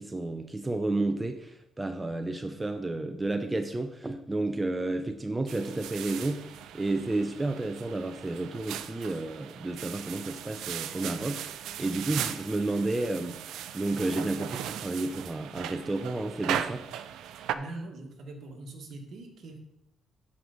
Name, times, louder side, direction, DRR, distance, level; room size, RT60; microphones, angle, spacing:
voice 1, 0.0-13.4 13.7-16.9, right 2 dB, 15° right, 7 dB, 0.6 m, -31 dB
sound 1, 5.5-17.6, right 10 dB, 85° right, 0.4 m, -38 dB
voice 2, 17.5-19.6, right 2 dB, 65° right, 2 dB, 1.7 m, -42 dB
11.0 x 4.7 x 4.0 m, 0.83 s
cardioid pair, 90°, 0 cm